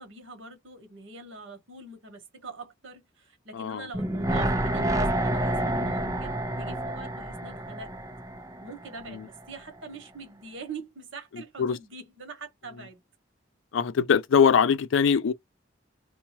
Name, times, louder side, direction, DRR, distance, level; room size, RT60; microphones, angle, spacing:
voice 1, 0.0-7.9 8.6-13.0, right 3 dB, 85° right, 1.3 m, -44 dB
sound 1, 3.9-9.1 9.4-9.5, right 1 dB, 15° right, 0.5 m, -28 dB
voice 2, 13.7-15.3, left 6 dB, 85° left, 0.4 m, -22 dB
2.8 x 2.2 x 2.8 m
head